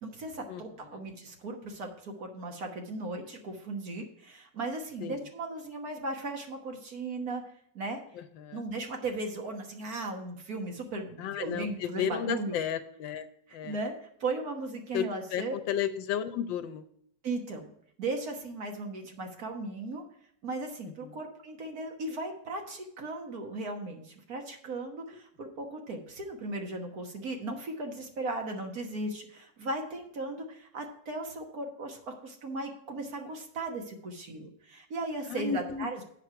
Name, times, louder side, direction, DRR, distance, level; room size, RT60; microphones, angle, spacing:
voice 1, 0.0-7.4 7.7-8.0 8.5-12.6 13.5-15.6 17.2-17.7 18.0-20.0 20.4-36.0, right 2 dB, 55° right, 3 dB, 1.6 m, -37 dB
voice 2, 8.2-8.6 11.2-13.2 13.5-13.8 14.9-15.0 15.3-16.8 21.0-21.1 35.3-35.9, left 8 dB, 80° left, 11 dB, 1.4 m, -33 dB
8.0 x 6.1 x 5.8 m, 0.68 s
omnidirectional pair, 2.0 m